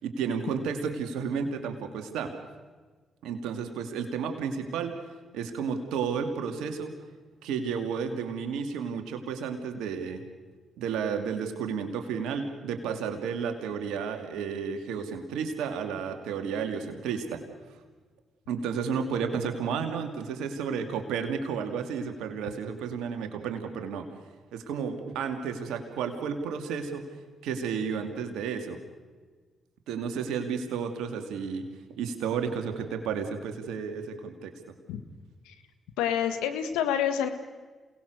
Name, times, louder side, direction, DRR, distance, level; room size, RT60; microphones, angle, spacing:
voice 1, 0.0-2.3 3.2-4.9 5.3-6.9 7.4-10.2 10.8-17.4 18.5-24.1 24.5-27.0 27.4-28.8 29.9-31.6 31.9-34.5, right 6 dB, 80° right, 6 dB, 2.5 m, -32 dB
voice 2, 36.0-37.3, left 9 dB, 85° left, 9 dB, 1.6 m, -27 dB
28.0 x 19.0 x 6.6 m, 1.4 s
hypercardioid pair, 45°, 0 cm